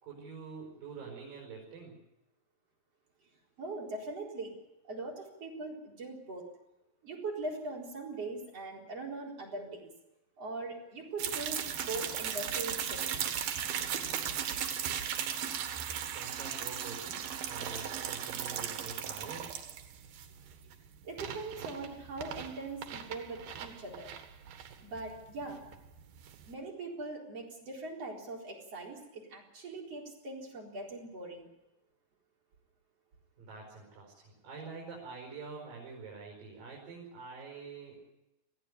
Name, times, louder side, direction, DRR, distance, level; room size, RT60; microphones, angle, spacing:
voice 1, 0.0-2.0 16.1-17.2 17.5-19.5 33.4-38.0, right 4 dB, 70° right, -2 dB, 7.0 m, -46 dB
voice 2, 3.6-4.6 4.9-6.5 7.0-9.9 10.4-13.3 21.0-24.1 24.8-25.6 26.5-31.5, right 2 dB, 45° right, -1 dB, 5.1 m, -41 dB
sound 1, 11.2-26.5, right 9 dB, 90° right, 3.4 m, -37 dB
20.0 x 15.0 x 10.0 m, 0.94 s
omnidirectional pair, 4.1 m